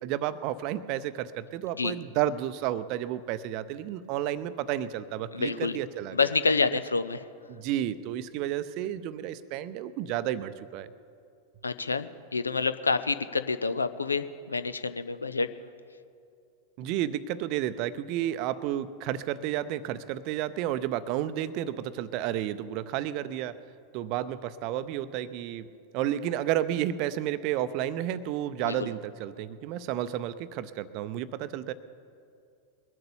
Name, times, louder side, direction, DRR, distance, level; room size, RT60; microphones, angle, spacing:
voice 1, 0.0-6.3 7.5-10.9 16.8-23.5 23.9-25.7 25.9-31.7, right 12 dB, 45° right, 14 dB, 0.6 m, -31 dB
voice 2, 5.3-5.8 6.1-7.3 11.6-15.5 28.6-28.9, left 4 dB, 75° left, 13 dB, 0.5 m, -28 dB
21.5 x 7.8 x 7.1 m, 2.5 s
figure-of-eight pair, 90°, 0 cm